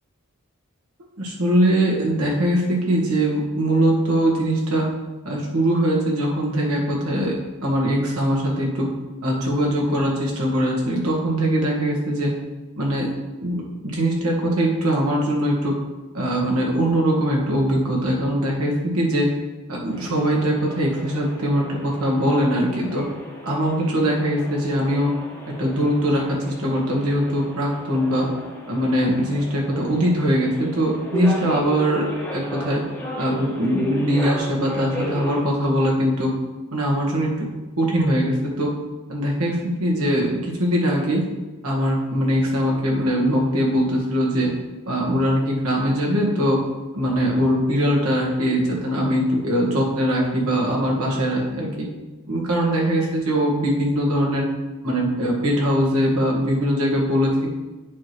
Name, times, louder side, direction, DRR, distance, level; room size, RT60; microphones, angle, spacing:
voice 1, 1.2-4.9 5.2-7.4 7.6-8.9 9.2-12.3 12.8-13.1 13.4-13.6 13.9-15.7 16.1-19.3 19.7-23.1 23.4-25.1 25.6-28.3 28.7-32.1 32.3-32.8 33.2-36.3 36.7-37.5 37.8-38.7 39.1-41.2 41.6-44.5 44.9-46.6 46.9-51.9 52.3-54.5 54.8-57.5, equal, 85° right, -2 dB, 1.8 m, -21 dB
sound 1, 19.9-35.4, equal, 10° left, 1.2 m, -35 dB
8.4 x 3.1 x 6.0 m, 1.2 s
head